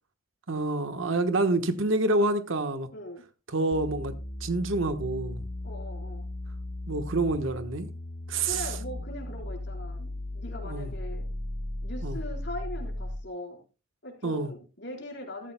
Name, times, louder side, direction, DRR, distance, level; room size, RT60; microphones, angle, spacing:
voice 1, 0.5-2.9 3.5-4.1 4.4-5.4 6.9-7.9 8.3-8.6 10.6-10.9 12.0-12.2 14.2-14.5, right 2 dB, 70° right, 1.2 m, -27 dB
voice 2, 2.9-3.2 5.6-6.3 8.4-11.2 11.8-13.6 14.0-15.5, left 1 dB, 55° left, 4.3 m, -40 dB
sound 1, 3.7-13.3, left 1 dB, 40° left, 1.0 m, -36 dB
14.0 x 14.0 x 2.2 m
head